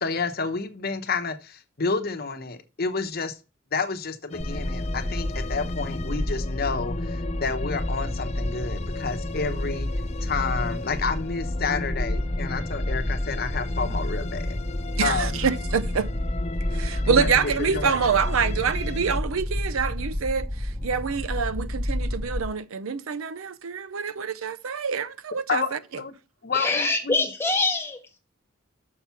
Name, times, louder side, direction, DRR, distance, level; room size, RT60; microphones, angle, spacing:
voice 1, 0.0-3.4 3.7-9.9 10.2-14.6 15.0-15.4 17.2-18.0 25.5-26.1 26.4-27.3, left 4 dB, 50° left, 0.9 m, -30 dB
sound 1, 4.3-19.2, left 3 dB, 30° left, 0.4 m, -37 dB
sound 2, 4.4-22.4, left 1 dB, 30° right, 3.5 m, -30 dB
voice 2, 15.0-16.1 16.7-20.5 20.8-25.8, right 6 dB, 85° right, 0.5 m, -26 dB
voice 3, 26.5-28.2, left 3 dB, 10° left, 1.4 m, -25 dB
6.5 x 5.9 x 5.7 m
head